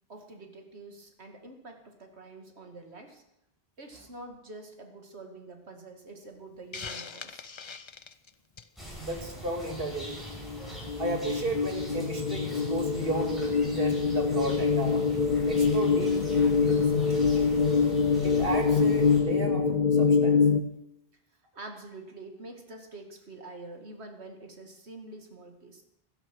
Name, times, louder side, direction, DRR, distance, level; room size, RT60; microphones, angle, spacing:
voice 1, 0.1-3.2 3.8-7.4 21.5-25.8, right 2 dB, 85° right, 4 dB, 2.4 m, -46 dB
Hiss, 6.7-8.8, left 5 dB, 35° left, 0.5 m, -41 dB
sound 1, 8.8-19.2, right 1 dB, ahead, 6.8 m, -42 dB
voice 2, 9.0-10.2 11.0-15.0 15.5-16.1 16.6-16.8 18.2-20.4, right 2 dB, 60° right, 3 dB, 2.5 m, -34 dB
sound 2, 10.1-20.6, left 5 dB, 50° left, 0.9 m, -25 dB
16.0 x 12.5 x 6.2 m, 0.80 s
omnidirectional pair, 1.1 m